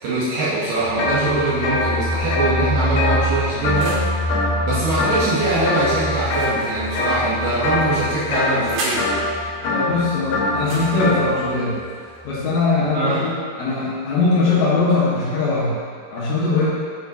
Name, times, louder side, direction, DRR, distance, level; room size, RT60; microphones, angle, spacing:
voice 1, 0.0-4.1 4.6-9.1 12.8-13.2, right 2 dB, 70° right, -9 dB, 2.2 m, -22 dB
sound 1, 0.8-11.5 11.8-11.9 12.2-12.3, equal, 45° left, 2.2 m, -28 dB
sound 2, 1.0-1.2 1.5-4.0 4.3-4.7 5.0-5.3 5.7-6.5 7.0-7.3 7.6-11.2, left 2 dB, 80° left, 3.3 m, -23 dB
sound 3, 1.0-1.8 2.5-4.2 6.2-7.3 8.1-9.1 10.5-12.5, right 2 dB, 90° right, 3.4 m, -35 dB
voice 2, 9.6-11.8 12.2-13.3 13.6-15.7 16.1-16.7, left 3 dB, 65° left, -9 dB, 1.9 m, -20 dB
8.4 x 5.3 x 2.8 m, 2.1 s
omnidirectional pair, 4.8 m